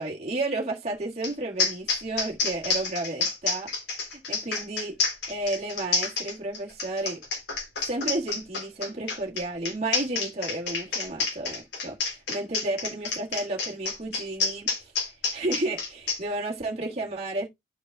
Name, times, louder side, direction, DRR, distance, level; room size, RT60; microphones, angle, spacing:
voice 1, 0.0-3.7 4.1-5.0 5.3-7.2 7.8-14.9 15.3-17.5, right 2 dB, 40° right, 1.7 m, -32 dB
sound 1, 1.2-1.3 1.6-16.2, left 4 dB, 70° left, 3.4 m, -29 dB
13.5 x 5.2 x 2.3 m
head